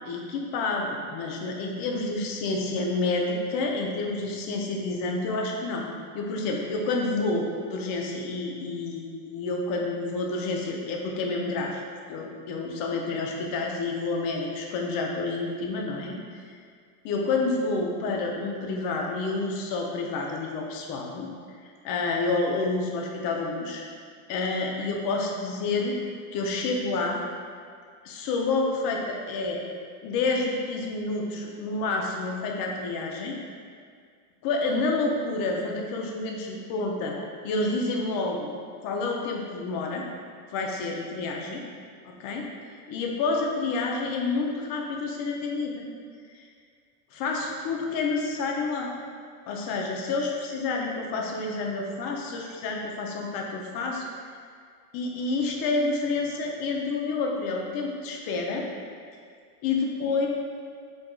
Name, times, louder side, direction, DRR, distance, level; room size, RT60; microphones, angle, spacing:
voice 1, 0.0-5.9 6.1-11.8 12.1-16.2 16.4-16.6 17.0-21.3 21.6-23.8 24.3-26.0 26.3-27.2 28.0-29.6 30.0-33.4 34.4-37.2 37.4-38.5 38.8-40.1 40.5-41.6 42.0-42.5 42.9-45.9 46.3-46.5 47.1-48.9 49.5-54.0 54.9-58.7 59.6-60.3, left 3 dB, 50° left, 0 dB, 0.8 m, -29 dB
5.0 x 3.6 x 2.3 m, 2.1 s
supercardioid pair, 110°, 45 cm